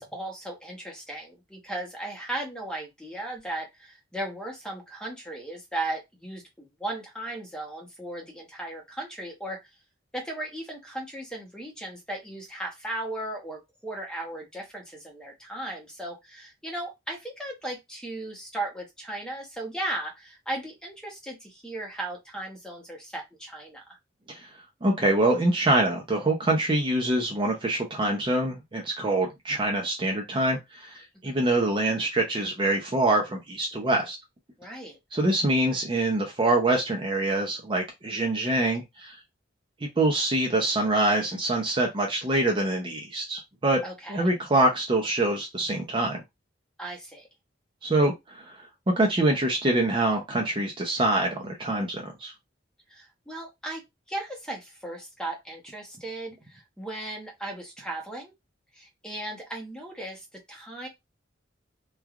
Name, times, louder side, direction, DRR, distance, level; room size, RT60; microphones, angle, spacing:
voice 1, 0.0-9.7 10.1-24.0 31.2-31.4 34.6-35.0 43.8-44.3 46.8-47.3 52.9-53.8 54.1-58.3 58.7-60.9, right 1 dB, 5° left, 0 dB, 0.8 m, -36 dB
voice 2, 24.8-34.2 35.1-39.1 39.8-43.8 44.1-46.2 47.8-48.7 49.0-52.3, right 2 dB, 25° right, 1 dB, 0.5 m, -25 dB
3.2 x 2.3 x 2.3 m, 0.19 s
head